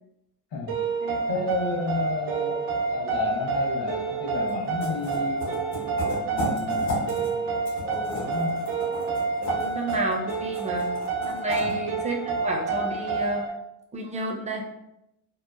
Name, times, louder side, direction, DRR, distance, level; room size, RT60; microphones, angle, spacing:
sound 1, 0.7-13.5, right 4 dB, 75° right, 0.8 m, -29 dB
voice 1, 1.3-8.6 11.6-11.8, left 3 dB, 65° left, -1 dB, 1.0 m, -32 dB
sound 2, 4.5-4.6 4.8-7.3 7.7-11.7, left 1 dB, 85° left, 1.2 m, -34 dB
voice 2, 9.4-10.9 11.2-13.4 13.9-14.6, right 2 dB, 15° right, 1 dB, 0.5 m, -31 dB
3.0 x 2.0 x 2.4 m, 0.88 s
supercardioid pair, 65°, 47 cm